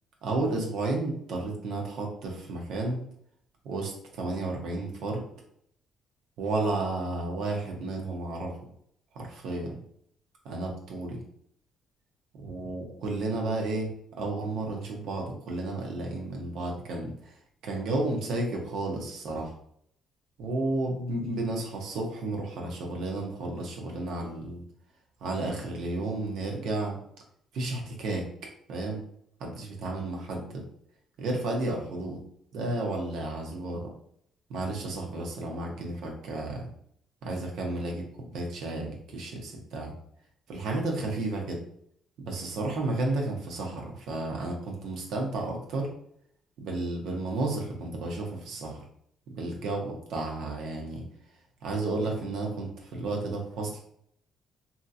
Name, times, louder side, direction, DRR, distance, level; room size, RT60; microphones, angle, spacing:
voice 1, 0.2-3.0 3.6-5.2 6.4-8.5 9.1-9.7 10.4-11.2 12.4-13.9 14.2-17.3 17.6-19.5 20.4-24.6 25.2-27.0 27.5-28.3 28.7-29.0 29.4-30.6 31.2-32.2 32.5-33.9 34.5-36.6 37.2-39.9 40.5-41.6 42.2-45.9 46.6-48.8 49.3-51.0 51.6-53.8, right 2 dB, 75° right, 0 dB, 0.8 m, -32 dB
2.9 x 2.8 x 2.5 m, 0.67 s
supercardioid pair, 65°, 0 cm